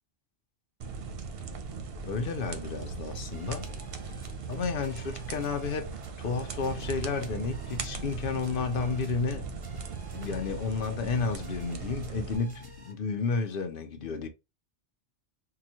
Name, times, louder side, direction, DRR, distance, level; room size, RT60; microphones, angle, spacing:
sound 1, 0.8-12.4, right 5 dB, 60° right, 0.8 m, -39 dB
voice 1, 2.0-3.7 4.5-5.9 6.2-9.5 10.1-14.3, left 4 dB, 55° left, 0.8 m, -32 dB
sound 2, 3.3-12.9, left 1 dB, 20° right, 0.8 m, -49 dB
3.8 x 2.3 x 2.8 m
omnidirectional pair, 1.2 m